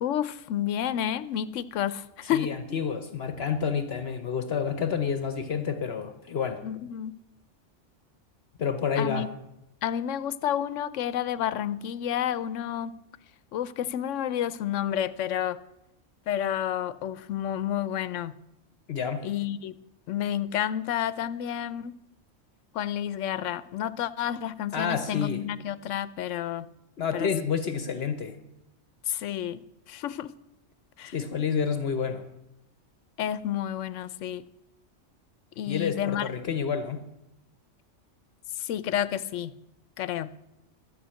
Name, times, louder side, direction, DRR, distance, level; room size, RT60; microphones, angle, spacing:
voice 1, 0.0-2.5 6.6-7.2 9.0-9.3 9.8-13.0 13.5-15.6 16.3-18.4 19.2-19.7 20.1-22.0 22.7-26.7 27.1-27.3 29.1-29.6 29.9-30.3 31.0-31.2 33.2-34.4 35.6-36.3 38.6-39.5 40.0-40.3, left 10 dB, 90° left, 16 dB, 1.0 m, -30 dB
voice 2, 2.3-6.6 8.6-9.3 18.9-19.3 24.7-25.4 27.0-28.4 31.1-32.2 35.7-37.0, left 6 dB, 60° left, 10 dB, 1.0 m, -29 dB
13.0 x 9.3 x 7.6 m, 0.88 s
omnidirectional pair, 1.2 m